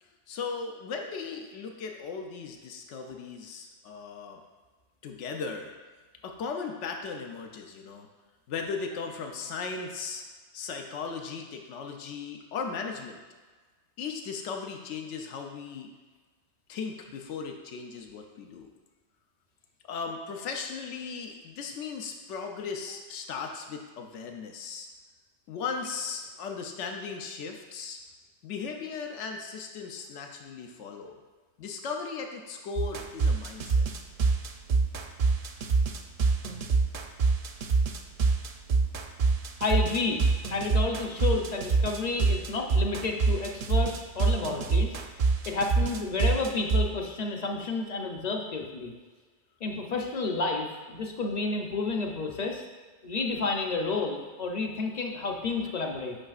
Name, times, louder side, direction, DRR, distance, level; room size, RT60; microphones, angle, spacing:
voice 1, 0.0-4.4 5.0-5.7 6.2-8.1 8.5-10.2 10.5-13.2 14.0-15.9 16.7-18.7 19.8-24.9 25.5-28.0 28.4-31.2 31.6-33.9, left 5 dB, 85° left, 3 dB, 1.0 m, -37 dB
sound 1, 32.8-46.9, right 4 dB, 60° right, 0.6 m, -25 dB
voice 2, 39.6-40.2 40.5-44.9 45.5-48.9 49.6-52.6 53.0-56.2, left 3 dB, 45° left, 2 dB, 0.7 m, -30 dB
8.8 x 5.5 x 2.4 m, 1.4 s
omnidirectional pair, 1.2 m